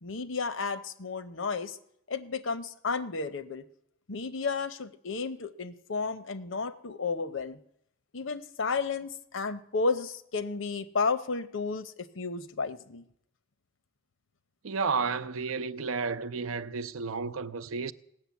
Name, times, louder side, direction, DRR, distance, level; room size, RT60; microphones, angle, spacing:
voice 1, 0.0-1.8 2.1-3.6 4.1-7.6 8.1-13.0, left 4 dB, 70° left, 0.8 m, -32 dB
voice 2, 14.6-17.9, right 5 dB, 90° right, 0.6 m, -32 dB
17.5 x 6.6 x 8.4 m
head